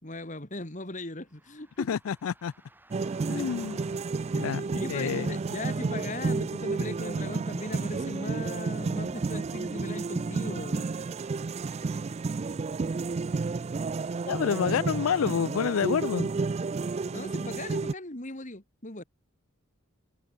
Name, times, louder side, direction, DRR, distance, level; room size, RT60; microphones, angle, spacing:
voice 1, 0.0-2.0 4.1-4.3 4.6-10.9 17.1-19.0, left 2 dB, 35° left, 2.9 m, -38 dB
sound 1, 1.2-6.4, right 2 dB, 10° right, 7.6 m, -59 dB
voice 2, 1.9-2.5 3.3-3.8 4.3-5.3 14.3-16.3, left 7 dB, 90° left, 0.4 m, -28 dB
sound 2, 2.9-17.9, right 4 dB, 30° right, 0.3 m, -31 dB
head